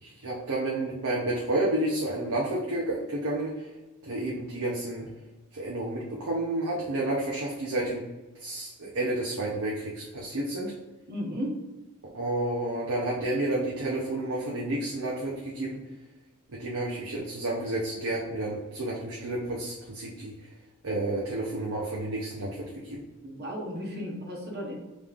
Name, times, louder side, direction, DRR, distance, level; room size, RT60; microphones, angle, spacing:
voice 1, 0.0-3.7 4.0-5.1 5.5-8.0 8.4-10.7 12.1-15.8 16.6-20.3 20.8-23.0, right 1 dB, 80° right, -4 dB, 0.8 m, -30 dB
voice 2, 11.1-11.6 23.2-24.8, equal, 50° right, -1 dB, 1.0 m, -34 dB
5.2 x 3.1 x 2.5 m, 1.2 s
head